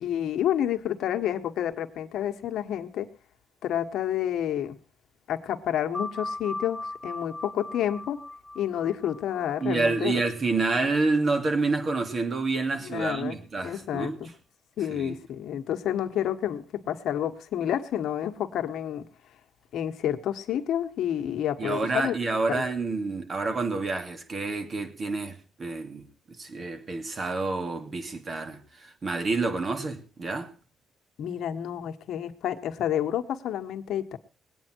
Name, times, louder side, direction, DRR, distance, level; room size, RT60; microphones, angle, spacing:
voice 1, 0.0-3.1 3.6-4.8 5.3-8.2 8.5-10.2 12.8-14.3 14.8-19.1 19.7-22.1 22.5-22.6 31.2-34.2, left 10 dB, 75° left, 1.4 m, -29 dB
sound 1, 5.9-11.1, left 2 dB, 5° right, 2.9 m, -39 dB
voice 2, 9.6-14.2 14.9-15.2 21.6-30.5, right 3 dB, 40° right, 2.7 m, -28 dB
21.0 x 9.1 x 4.6 m
cardioid pair, 90°, 0 cm